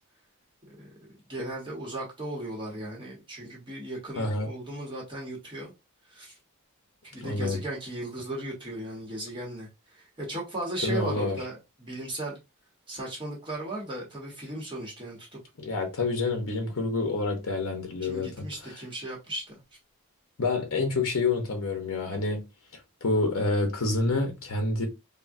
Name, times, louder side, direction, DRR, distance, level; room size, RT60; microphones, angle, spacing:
voice 1, 1.3-5.7 6.1-6.3 7.0-12.4 12.9-15.4 18.0-19.6, right 1 dB, 20° right, 0.9 m, -36 dB
voice 2, 4.2-4.5 7.2-7.6 10.8-11.4 15.6-18.8 20.4-22.4 23.0-24.9, left 3 dB, 65° left, 0.7 m, -28 dB
3.5 x 2.1 x 2.5 m
head